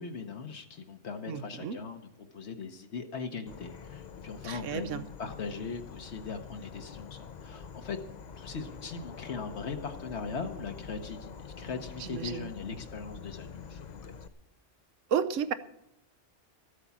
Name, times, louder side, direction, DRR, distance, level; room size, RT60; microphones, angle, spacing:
voice 1, 0.0-8.0 8.4-14.1, left 5 dB, 65° left, 5 dB, 1.2 m, -40 dB
voice 2, 1.3-1.8 4.4-5.0 12.0-12.5 15.1-15.5, right 8 dB, 90° right, 12 dB, 1.1 m, -32 dB
Insect / Frog, 3.5-14.3, left 6 dB, 50° left, 0.6 m, -46 dB
13.5 x 8.2 x 7.1 m, 0.81 s
omnidirectional pair, 1.2 m